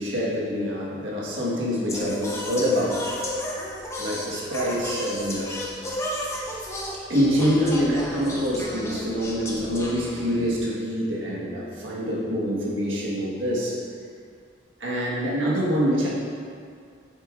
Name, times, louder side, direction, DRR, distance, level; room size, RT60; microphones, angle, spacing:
voice 1, 0.0-3.0 4.0-5.5 7.1-13.8 14.8-16.1, equal, 90° right, -5 dB, 1.6 m, -25 dB
Singing, 1.9-10.6, left 1 dB, 15° left, 0.8 m, -33 dB
8.1 x 6.8 x 2.5 m, 2.2 s
head